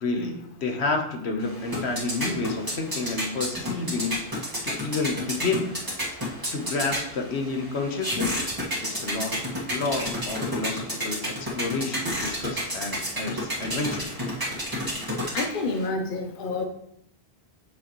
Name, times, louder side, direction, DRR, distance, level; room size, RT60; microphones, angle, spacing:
voice 1, 0.0-4.1 4.6-5.7 6.5-8.5 8.8-9.4 9.7-14.1, left 3 dB, 80° left, 3 dB, 1.3 m, -30 dB
sound 1, 1.4-15.9, equal, 20° right, 1.6 m, -31 dB
voice 2, 15.3-16.7, left 3 dB, 55° left, 5 dB, 0.9 m, -28 dB
8.2 x 6.3 x 3.1 m, 0.71 s
omnidirectional pair, 1.1 m